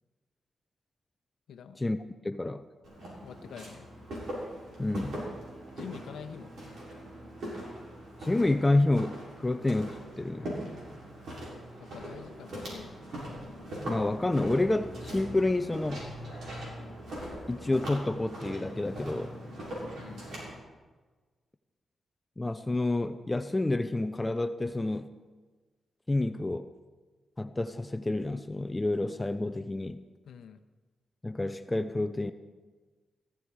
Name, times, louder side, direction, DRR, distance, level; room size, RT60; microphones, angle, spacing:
voice 1, 1.5-1.8 3.2-3.9 5.7-6.6 11.8-13.0 20.0-20.3 30.2-30.6, left 7 dB, 85° left, 9 dB, 1.0 m, -46 dB
voice 2, 2.2-2.6 4.8-5.2 8.2-10.5 13.9-16.1 17.5-19.3 22.4-25.1 26.1-26.7 27.4-30.0 31.2-32.3, left 2 dB, 20° left, 11 dB, 0.7 m, -29 dB
Walk footsteps, 2.8-20.5, equal, 80° right, 7.1 m, -41 dB
Bowed string instrument, 4.2-9.7, right 3 dB, 55° right, 2.3 m, -56 dB
18.0 x 15.0 x 4.9 m, 1.3 s
cardioid pair, 70°, 0 cm